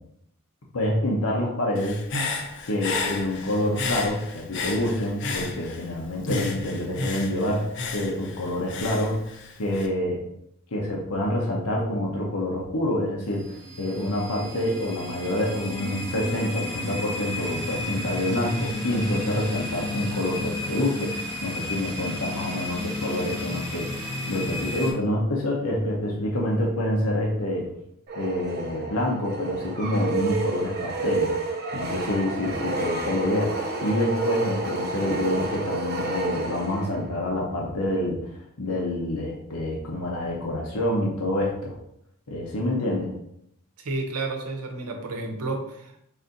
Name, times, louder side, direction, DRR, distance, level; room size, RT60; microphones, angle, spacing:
voice 1, 0.7-2.0 2.6-7.7 7.9-9.2 9.6-10.2 10.7-27.7 28.2-31.3 31.7-41.8 42.3-43.1, left 1 dB, 80° left, -2 dB, 0.8 m, -27 dB
Human voice / Breathing, 1.8-5.9 6.2-9.9, left 3 dB, 55° left, 0.5 m, -32 dB
sound 1, 13.2-24.9, left 1 dB, 15° left, 1.5 m, -32 dB
sound 2, 28.1-37.2, right 3 dB, 45° right, 0.5 m, -30 dB
voice 2, 43.8-46.1, right 3 dB, 90° right, 3 dB, 0.8 m, -31 dB
4.0 x 2.6 x 4.0 m, 0.75 s
head